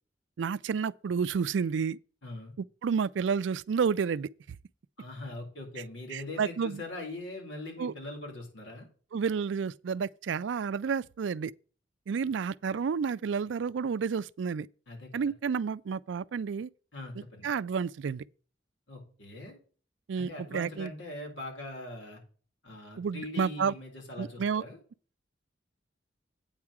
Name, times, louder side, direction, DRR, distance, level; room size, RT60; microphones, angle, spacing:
voice 1, 0.4-2.0 2.8-4.3 6.1-6.8 7.8-7.9 9.1-11.5 12.1-14.7 15.1-16.7 17.4-18.2 20.1-20.9 23.0-23.7 24.2-24.6, right 6 dB, 75° right, 0.4 m, -30 dB
voice 2, 2.2-2.5 5.0-8.9 14.9-15.2 16.9-17.5 18.9-19.6 20.2-22.2 22.6-24.8, left 2 dB, 85° left, 4.2 m, -41 dB
8.8 x 4.8 x 7.1 m
head